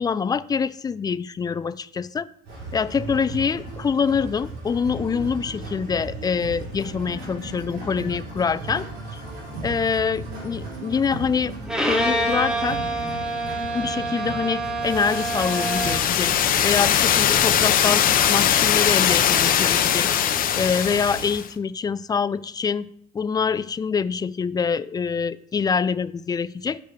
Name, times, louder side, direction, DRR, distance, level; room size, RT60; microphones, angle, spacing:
voice 1, 0.0-2.3 2.7-8.8 9.1-9.2 9.6-11.5 11.8-12.8 13.7-16.3 16.6-20.1 20.5-22.9 23.1-26.8, left 6 dB, 25° left, 16 dB, 0.3 m, -25 dB
sound 1, 2.4-21.3, right 2 dB, 75° right, 4.0 m, -36 dB
Bowed string instrument, 11.7-16.2, right 1 dB, 5° right, 1.4 m, -27 dB
sound 2, 14.9-21.5, left 10 dB, 55° left, 0.7 m, -21 dB
6.5 x 5.6 x 6.1 m, 0.69 s
cardioid pair, 110°, 17 cm